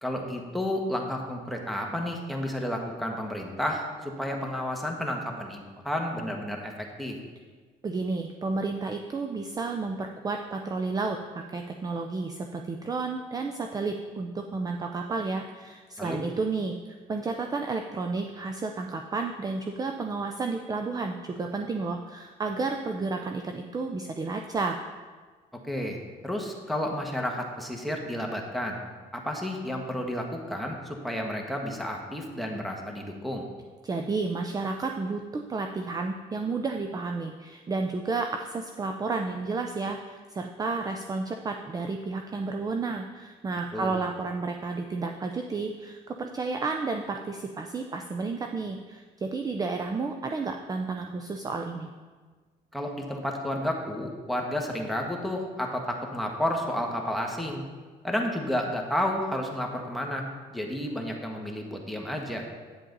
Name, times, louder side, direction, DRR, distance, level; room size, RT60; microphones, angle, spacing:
voice 1, 0.0-7.2 16.0-16.2 25.7-28.8 29.1-33.5 43.7-43.9 52.7-57.6 58.0-62.5, left 1 dB, ahead, 1 dB, 1.3 m, -31 dB
voice 2, 7.8-16.8 17.1-24.8 33.8-51.9, right 3 dB, 20° right, 4 dB, 0.5 m, -31 dB
8.8 x 7.5 x 4.0 m, 1.4 s
cardioid pair, 110°, 17 cm